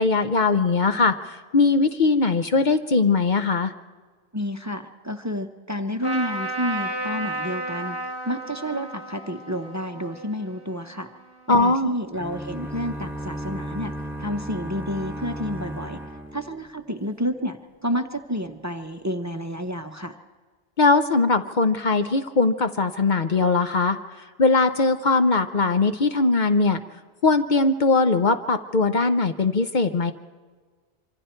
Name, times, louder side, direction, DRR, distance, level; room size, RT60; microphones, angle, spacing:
voice 1, 0.0-3.7 11.5-11.9 20.8-24.0 24.4-26.8 27.2-30.1, left 3 dB, 50° left, 8 dB, 0.8 m, -20 dB
voice 2, 4.3-11.1 11.5-13.9 14.2-16.0 16.3-20.2, equal, 20° right, 7 dB, 0.8 m, -30 dB
Trumpet, 6.0-11.5, right 1 dB, 30° left, 3.5 m, -33 dB
sound 1, 12.1-17.1, right 1 dB, ahead, 2.5 m, -35 dB
26.0 x 25.0 x 4.5 m, 1.5 s
omnidirectional pair, 1.0 m